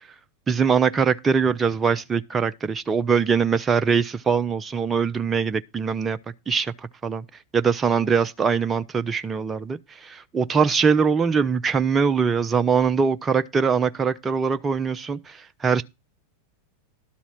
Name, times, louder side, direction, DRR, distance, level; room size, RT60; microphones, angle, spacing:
voice 1, 0.5-6.2 6.5-6.7 7.0-7.2 7.5-15.4 15.6-15.8, right 6 dB, 20° right, 0.5 m, -22 dB
12.0 x 4.1 x 7.4 m
figure-of-eight pair, 90°, 0 cm